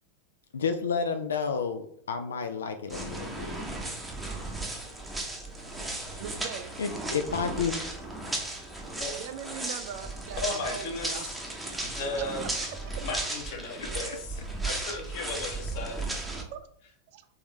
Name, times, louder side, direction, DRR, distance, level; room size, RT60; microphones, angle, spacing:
voice 1, 0.5-3.6 6.8-7.8, left 5 dB, 70° left, 7 dB, 0.3 m, -30 dB
sound 1, 2.9-16.4, right 2 dB, 5° right, 0.7 m, -35 dB
sound 2, 3.0-13.4, left 1 dB, 15° left, 1.1 m, -54 dB
Engine, 4.1-9.9, equal, 75° right, 0.7 m, -54 dB
voice 2, 6.2-6.8 9.2-11.3 11.6-11.7 12.2-13.0 16.5-16.6 17.1-17.3, right 9 dB, 50° right, 10 dB, 0.3 m, -41 dB
voice 3, 10.4-11.3 11.8-12.4 13.0-16.0, left 2 dB, 50° left, 3 dB, 1.0 m, -35 dB
3.5 x 3.4 x 3.1 m, 0.66 s
figure-of-eight pair, 90°, 0 cm